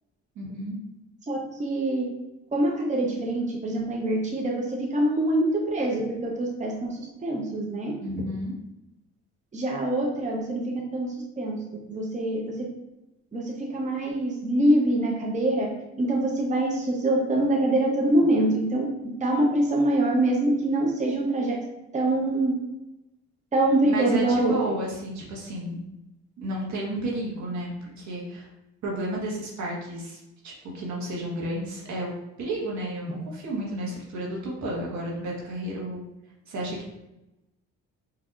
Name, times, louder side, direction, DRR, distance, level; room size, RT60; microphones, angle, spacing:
voice 1, 0.3-0.8 8.0-8.5 23.9-25.8 26.4-28.5 28.8-32.1 32.4-36.0 36.5-36.9, right 1 dB, 70° right, -3 dB, 1.3 m, -32 dB
voice 2, 1.3-2.1 2.5-7.9 9.5-12.7 13.3-15.7 16.0-21.6 21.9-22.5 23.5-24.5, right 1 dB, 25° right, -1 dB, 0.8 m, -25 dB
4.9 x 2.7 x 2.4 m, 0.94 s
cardioid pair, 90°, 30 cm